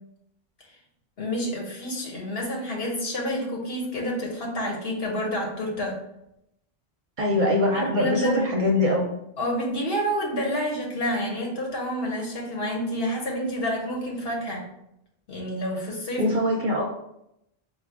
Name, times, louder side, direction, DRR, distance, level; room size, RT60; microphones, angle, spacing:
voice 1, 1.2-6.0 7.7-8.5 9.4-14.7 15.3-16.3, equal, 75° left, -1 dB, 1.2 m, -29 dB
voice 2, 7.2-9.1 16.2-16.9, left 1 dB, 60° right, 0 dB, 0.6 m, -23 dB
4.2 x 2.3 x 3.4 m, 0.81 s
omnidirectional pair, 1.0 m